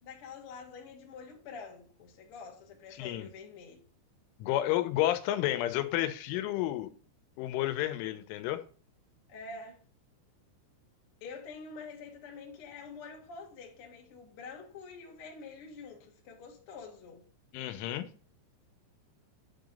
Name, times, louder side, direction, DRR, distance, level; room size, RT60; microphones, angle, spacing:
voice 1, 0.0-3.8 9.3-9.8 11.2-17.2, left 4 dB, 70° left, 1.3 m, -47 dB
voice 2, 3.0-3.3 4.4-6.9 7.4-8.6 17.5-18.1, left 14 dB, 85° left, 3.1 m, -31 dB
10.0 x 3.9 x 5.1 m
omnidirectional pair, 5.6 m